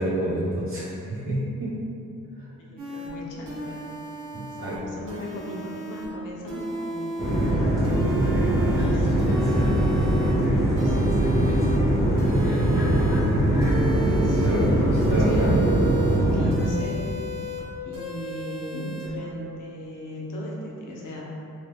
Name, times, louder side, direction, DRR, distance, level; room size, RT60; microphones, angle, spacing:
voice 1, 0.0-1.7 4.3-4.7 14.3-14.6 15.1-15.6, right 1 dB, 40° right, -10 dB, 1.1 m, -28 dB
voice 2, 2.6-3.8 4.6-7.2 8.7-9.3 10.4-11.2 14.2-17.0 17.4-17.5 17.8-21.2, equal, 75° left, -4 dB, 0.7 m, -37 dB
sound 1, 2.8-3.1 3.5-4.8 5.1-6.1 6.5-7.5 7.8-8.9 9.2-10.3 10.8-11.8 12.2-13.2 13.6-14.7 15.0-16.2 16.5-17.6 17.9-19.1, right 2 dB, 80° right, 0.9 m, -34 dB
sound 2, 7.2-16.5, right 1 dB, 10° right, 0.7 m, -21 dB
3.2 x 2.3 x 3.4 m, 2.6 s
wide cardioid pair, 145°, 32 cm